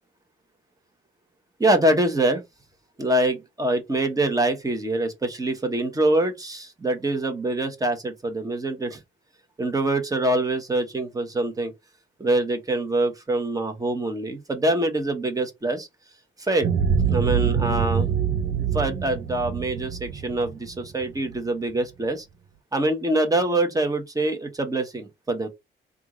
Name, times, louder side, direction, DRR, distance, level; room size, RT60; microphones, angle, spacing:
voice 1, 1.6-2.4 3.0-9.0 9.6-11.7 12.2-15.9 16.4-16.7 17.0-18.1 18.7-22.3 22.7-25.5, right 1 dB, 15° right, 1.1 m, -24 dB
sound 1, 16.6-21.4, right 7 dB, 70° right, 0.7 m, -25 dB
3.5 x 2.5 x 3.0 m
cardioid pair, 90°, 20 cm